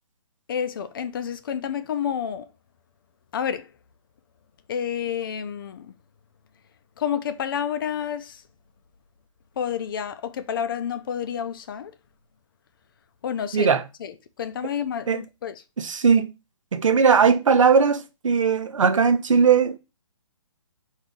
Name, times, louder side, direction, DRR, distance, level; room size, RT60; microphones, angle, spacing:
voice 1, 0.5-2.5 3.3-3.7 4.7-5.9 7.0-8.4 9.6-11.9 13.2-13.7 14.0-15.6, left 8 dB, 45° left, 0.5 m, -29 dB
voice 2, 13.5-13.8 15.1-15.2 15.8-16.3 16.7-19.8, right 6 dB, 80° right, 0.7 m, -19 dB
4.7 x 2.7 x 3.7 m
hypercardioid pair, 150°, 16 cm